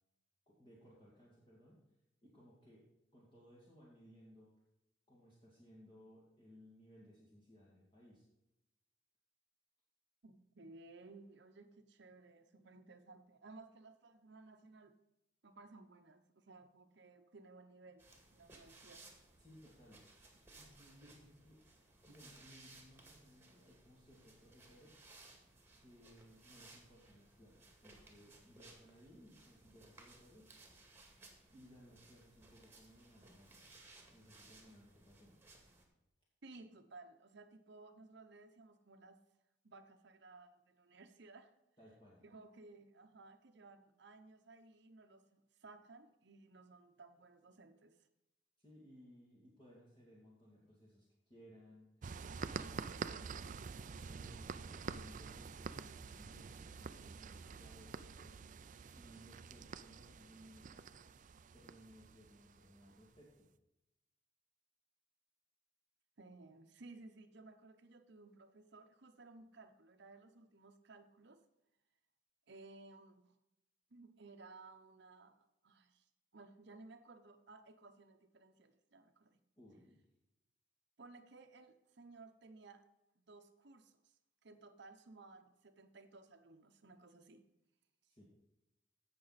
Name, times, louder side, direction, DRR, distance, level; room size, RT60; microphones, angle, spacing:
voice 1, 0.5-1.8 2.2-2.8 3.1-4.5 5.1-8.3 19.4-20.0 20.5-21.6 22.1-25.0 25.8-30.5 31.5-33.7 34.1-35.4 41.8-42.2 48.6-52.2 52.6-53.4 54.1-58.3 59.0-60.9 61.5-63.5 79.6-80.0 88.1-88.2, equal, 25° left, -5 dB, 2.4 m, -61 dB
voice 2, 10.2-14.9 15.4-18.0 18.3-19.1 36.4-39.2 39.6-41.5 42.2-48.1 66.2-71.4 72.5-73.3 73.9-79.4 81.0-82.9 83.2-84.1 84.4-87.4, right 3 dB, 60° right, 6 dB, 0.8 m, -58 dB
sound 1, 18.0-35.8, right 2 dB, 10° right, 2.0 m, -62 dB
sound 2, 52.0-63.2, right 5 dB, 40° right, 0.4 m, -47 dB
16.5 x 6.2 x 4.1 m, 0.90 s
head